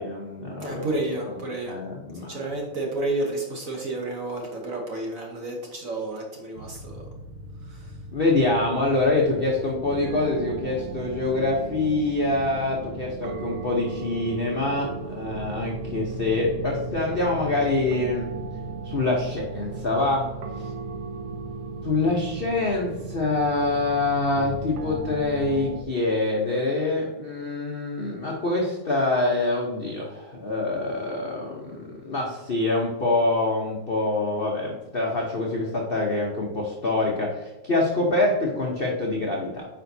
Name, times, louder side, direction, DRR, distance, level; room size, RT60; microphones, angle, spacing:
voice 1, 0.0-1.0 1.2-1.4 1.6-2.5 8.1-18.3 18.8-20.3 21.8-39.7, left 2 dB, 70° left, -2 dB, 0.5 m, -25 dB
voice 2, 0.6-1.7 2.3-7.0 7.7-7.8, right 2 dB, 50° right, 0 dB, 1.1 m, -31 dB
sound 1, 6.6-25.8, right 4 dB, 80° right, 1.6 m, -36 dB
8.9 x 5.1 x 2.7 m, 1.0 s
omnidirectional pair, 2.4 m